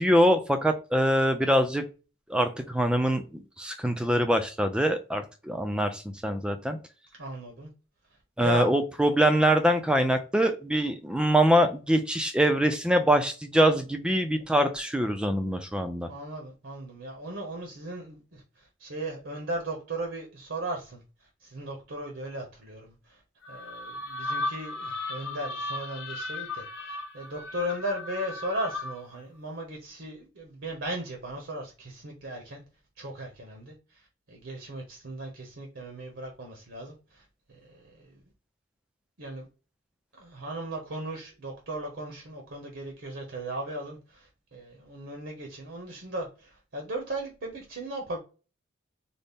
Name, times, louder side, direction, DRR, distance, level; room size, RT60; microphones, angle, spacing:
voice 1, 0.0-1.8 2.3-6.8 8.4-16.1, equal, 5° right, 7 dB, 0.3 m, -24 dB
voice 2, 7.2-7.7 8.4-8.7 16.1-21.0 21.4-23.2 23.5-32.6 33.0-37.2 37.6-38.2 39.2-39.5 40.2-48.2, right 1 dB, 60° right, 1 dB, 0.8 m, -37 dB
sound 1, 23.4-29.1, left 2 dB, 60° left, 0.8 m, -36 dB
4.0 x 2.0 x 3.4 m, 0.33 s
head